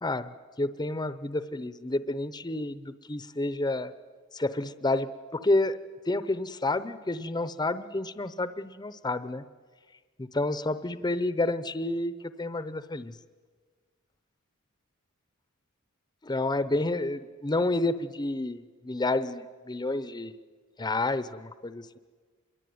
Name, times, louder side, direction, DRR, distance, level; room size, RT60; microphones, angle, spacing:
voice 1, 0.0-3.9 4.3-5.8 6.1-9.4 10.2-13.1 16.2-20.3 20.8-22.0, left 2 dB, 20° left, 13 dB, 0.7 m, -30 dB
26.5 x 22.0 x 9.4 m, 1.5 s
head